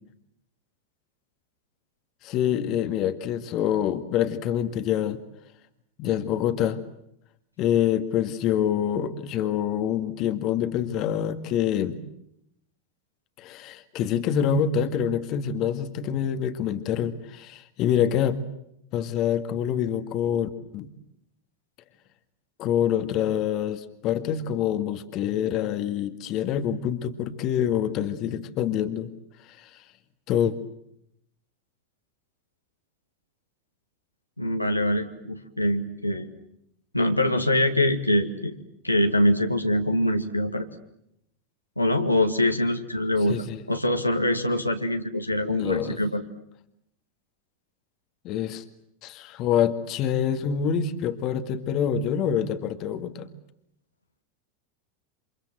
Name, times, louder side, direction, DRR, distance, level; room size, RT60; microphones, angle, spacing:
voice 1, 2.2-5.2 6.0-6.8 7.6-12.0 13.4-18.4 18.9-20.9 22.6-29.1 29.5-29.8 30.3-30.6 43.3-43.6 45.5-46.0 48.2-48.6 49.0-53.3, left 9 dB, 40° left, 9 dB, 2.0 m, -26 dB
voice 2, 34.4-36.3 36.9-38.6 38.8-40.7 41.8-43.4 43.7-46.2, left 1 dB, 85° left, 4 dB, 2.2 m, -24 dB
29.0 x 26.5 x 7.7 m, 0.77 s
figure-of-eight pair, 85°, 0 cm